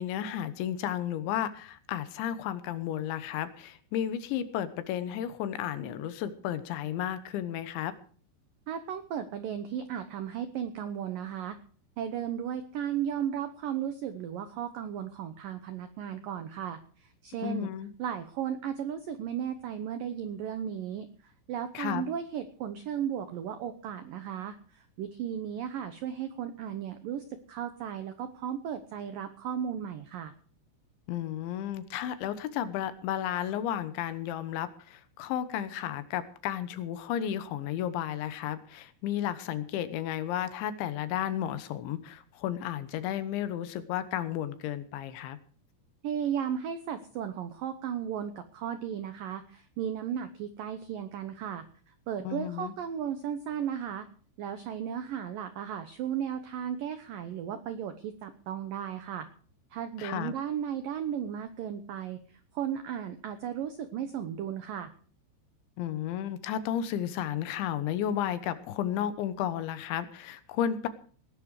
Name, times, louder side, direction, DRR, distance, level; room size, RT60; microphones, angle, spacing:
voice 1, 0.0-7.9 17.4-17.9 21.7-22.0 31.1-45.4 52.2-52.7 60.0-60.3 65.8-70.9, left 10 dB, 75° left, 12 dB, 3.4 m, -33 dB
voice 2, 8.7-11.6 12.0-17.7 18.0-30.3 46.0-54.1 54.4-59.3 59.7-64.9, right 9 dB, 80° right, 10 dB, 2.0 m, -35 dB
19.0 x 11.0 x 4.9 m, 0.44 s
omnidirectional pair, 5.5 m